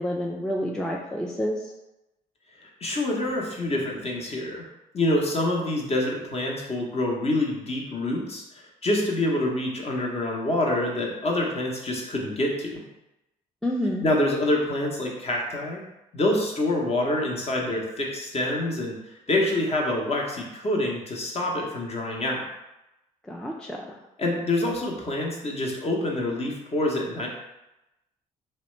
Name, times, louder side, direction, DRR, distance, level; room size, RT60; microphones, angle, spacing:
voice 1, 0.0-1.7 13.6-14.1 23.3-24.0, equal, 5° left, -1 dB, 0.4 m, -29 dB
voice 2, 2.5-4.6 4.9-12.8 14.0-15.8 16.1-22.4 24.2-27.3, left 1 dB, 35° left, -1 dB, 0.8 m, -26 dB
2.9 x 2.1 x 3.1 m, 0.94 s
hypercardioid pair, 50°, 18 cm